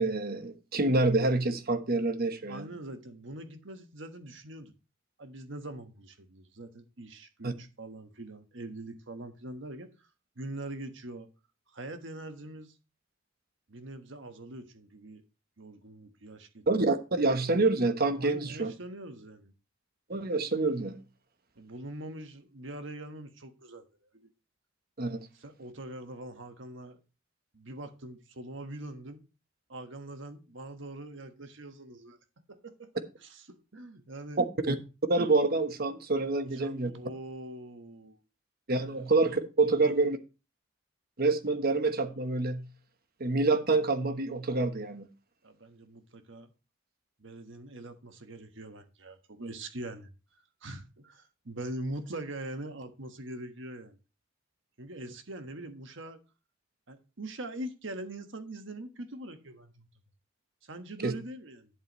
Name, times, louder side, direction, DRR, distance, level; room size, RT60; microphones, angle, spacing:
voice 1, 0.0-2.7 7.4-7.5 16.7-18.7 20.1-21.0 25.0-25.2 34.4-34.8 35.1-36.9 38.7-40.2 41.2-42.6 43.2-45.1 61.0-61.1, right 3 dB, 50° right, 1.1 m, -27 dB
voice 2, 2.5-4.7 5.2-9.9 10.4-11.3 11.7-12.7 13.7-15.2 15.6-16.7 18.2-19.5 21.6-23.8 24.1-24.3 25.3-27.0 27.5-29.2 29.7-32.2 32.5-34.4 36.3-38.2 38.7-39.1 39.8-39.9 45.4-46.5 47.2-50.1 50.6-54.0 54.8-56.2 56.9-59.9 60.6-61.7, right 1 dB, 65° right, 1.4 m, -43 dB
11.5 x 8.0 x 3.1 m
head